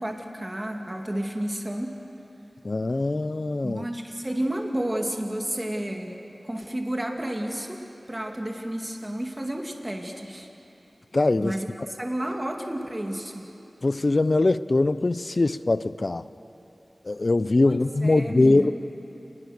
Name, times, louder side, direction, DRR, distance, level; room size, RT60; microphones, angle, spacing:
voice 1, 0.0-2.0 3.6-6.1 6.4-10.5 11.3-13.5 17.6-18.7, right 1 dB, 20° right, 2 dB, 2.3 m, -31 dB
voice 2, 2.6-3.8 11.1-11.5 13.8-16.2 17.1-18.7, left 2 dB, 50° left, 14 dB, 0.6 m, -22 dB
29.0 x 20.5 x 6.6 m, 2.9 s
wide cardioid pair, 70°, 0 cm